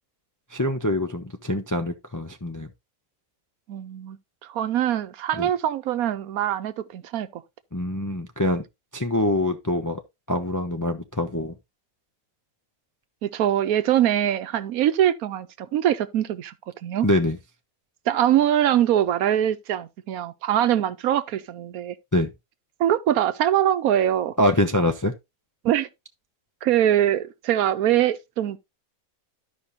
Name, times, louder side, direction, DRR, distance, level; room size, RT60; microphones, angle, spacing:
voice 1, 0.5-2.7 5.4-5.5 7.7-8.6 8.9-10.0 10.3-11.5 17.0-17.4 22.1-22.3 24.4-25.1, left 1 dB, 25° left, 0.4 m, -24 dB
voice 2, 3.7-4.2 4.5-7.4 13.2-16.5 16.8-17.1 18.1-22.0 22.8-24.3 25.6-25.9 26.6-28.6, right 11 dB, 80° right, 1.1 m, -23 dB
13.0 x 5.2 x 2.7 m
omnidirectional pair, 1.5 m